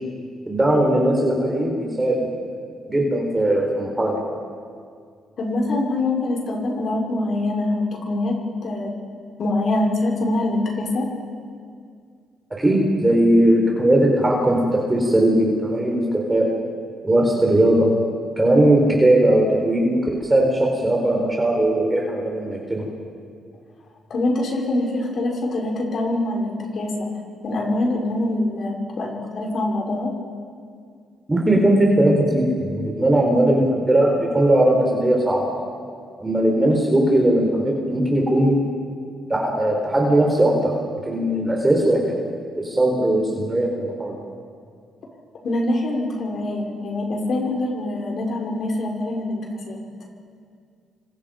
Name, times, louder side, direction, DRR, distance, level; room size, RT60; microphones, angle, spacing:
voice 1, 0.5-2.3 2.9-4.2 12.6-16.5 17.0-17.9 18.4-20.0 20.3-22.8 31.3-35.5 36.2-38.6 39.3-40.7 41.0-42.0 42.6-44.2, right 1 dB, 15° right, -1 dB, 4.5 m, -19 dB
voice 2, 5.4-8.9 9.4-11.1 24.1-27.1 27.4-30.1 45.4-49.8, left 2 dB, 55° left, 0 dB, 5.4 m, -24 dB
28.5 x 25.0 x 5.3 m, 2.2 s
cardioid pair, 90°, 0 cm